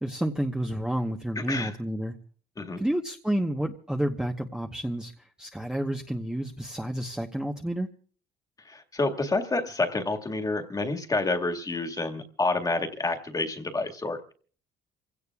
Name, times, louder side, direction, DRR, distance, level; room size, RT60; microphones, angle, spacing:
voice 1, 0.0-2.1 2.8-5.1 5.4-7.9, right 1 dB, 5° right, 2 dB, 1.1 m, -30 dB
voice 2, 8.7-14.3, left 2 dB, 20° left, 5 dB, 1.9 m, -28 dB
27.5 x 17.0 x 2.4 m, 0.44 s
cardioid pair, 110°, 17 cm